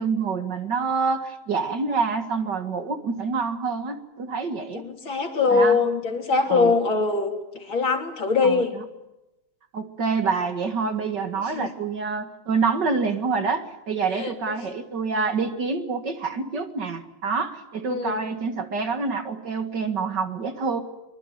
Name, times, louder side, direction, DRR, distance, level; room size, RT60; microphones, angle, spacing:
voice 1, 0.0-4.8 5.5-5.8 6.5-6.7 8.4-8.8 9.7-20.8, right 4 dB, 55° right, 7 dB, 2.4 m, -27 dB
voice 2, 4.7-8.7 11.5-11.7 14.1-14.3 17.9-18.2, left 4 dB, 65° left, 2 dB, 4.0 m, -22 dB
24.0 x 23.5 x 9.2 m, 0.96 s
omnidirectional pair, 2.3 m